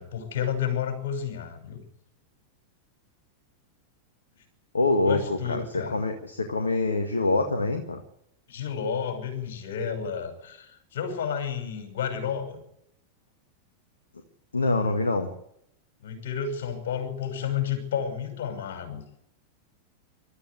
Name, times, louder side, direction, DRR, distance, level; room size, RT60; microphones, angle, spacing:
voice 1, 0.0-1.8 5.0-6.0 8.5-12.6 16.0-19.0, left 7 dB, 55° left, 5 dB, 6.0 m, -31 dB
voice 2, 4.7-8.0 14.5-15.3, left 2 dB, 75° left, 4 dB, 1.8 m, -25 dB
21.5 x 13.5 x 9.6 m, 0.77 s
figure-of-eight pair, 90°, 0 cm